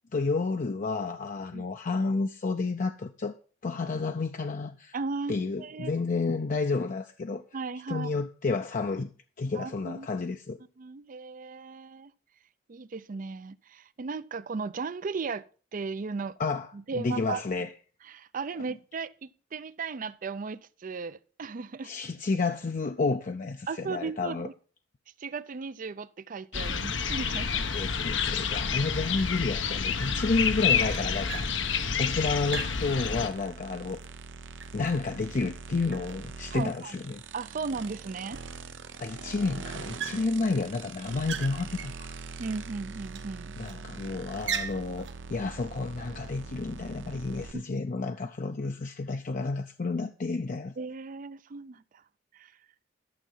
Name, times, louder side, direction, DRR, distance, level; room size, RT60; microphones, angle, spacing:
voice 1, 0.1-3.4 3.6-4.9 5.3-7.4 7.9-9.1 9.4-10.6 16.4-17.7 21.8-24.5 27.7-31.5 32.0-34.0 34.7-37.2 39.0-42.2 43.6-50.7, left 3 dB, 45° left, 0.5 m, -30 dB
voice 2, 4.9-6.0 7.5-8.1 9.5-10.1 10.8-12.1 12.7-15.4 15.7-16.4 16.7-17.4 18.0-21.9 23.7-24.5 25.2-27.7 36.5-37.0 37.3-38.4 42.4-43.5 47.5-47.6 50.8-52.0 52.3-52.5, right 4 dB, 45° right, 0.5 m, -36 dB
sound 1, 26.5-33.3, left 6 dB, 85° left, 1.0 m, -29 dB
sound 2, 27.8-27.9 28.4-28.8 29.1-29.6 29.8-33.5 33.9-35.6 35.9-36.9 37.4-37.5 37.8-37.9 38.2-39.0 39.2-39.5 40.0-40.6 41.0-42.7 43.1-43.8 44.3-45.2, right 7 dB, 70° right, 1.1 m, -41 dB
sound 3, 30.3-47.5, right 4 dB, 85° right, 0.8 m, -43 dB
12.0 x 6.8 x 5.4 m
head